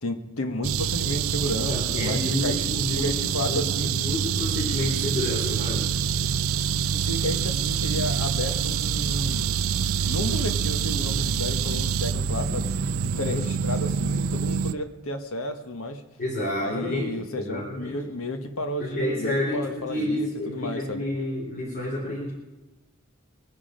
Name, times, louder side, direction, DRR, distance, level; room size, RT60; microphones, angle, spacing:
voice 1, 0.0-3.9 6.9-9.5 10.0-12.7 13.0-16.0 16.6-20.3 20.5-21.1, left 1 dB, 70° left, 7 dB, 1.5 m, -32 dB
sound 1, 0.6-14.7, right 7 dB, 70° right, 0.5 m, -26 dB
voice 2, 1.7-3.1 3.4-5.9 13.1-13.4 16.2-17.1 17.4-18.0 18.8-22.3, left 1 dB, 45° left, -5 dB, 3.9 m, -29 dB
23.0 x 10.0 x 5.2 m, 1.1 s
head